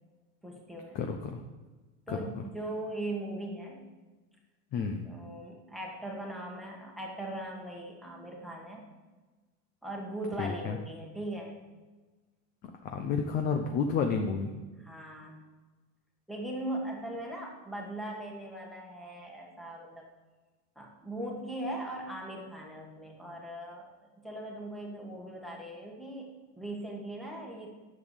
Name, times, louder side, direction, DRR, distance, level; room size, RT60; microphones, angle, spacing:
voice 1, 0.4-1.0 2.1-3.8 5.0-8.8 9.8-11.6 14.8-15.4 16.3-20.1 20.7-23.9 24.2-27.7, right 1 dB, ahead, -1 dB, 1.6 m, -39 dB
voice 2, 0.9-1.4 2.1-2.2 4.7-5.0 10.4-10.8 12.8-14.6, left 5 dB, 20° left, 5 dB, 0.6 m, -30 dB
10.5 x 7.2 x 8.2 m, 1.3 s
supercardioid pair, 180°, 39 cm